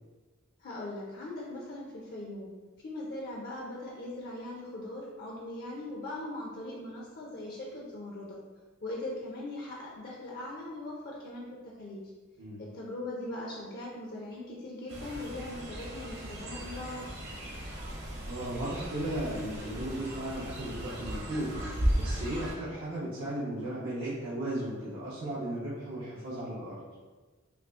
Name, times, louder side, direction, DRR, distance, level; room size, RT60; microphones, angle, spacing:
voice 1, 0.6-2.5 2.8-8.4 8.8-11.4 11.8-12.0 12.6-17.0, left 1 dB, 50° left, -3 dB, 0.5 m, -40 dB
Fowl, 14.9-22.5, equal, 55° right, 0.8 m, -36 dB
voice 2, 18.0-26.8, right 1 dB, 85° right, -10 dB, 0.9 m, -36 dB
5.8 x 2.0 x 2.4 m, 1.3 s
head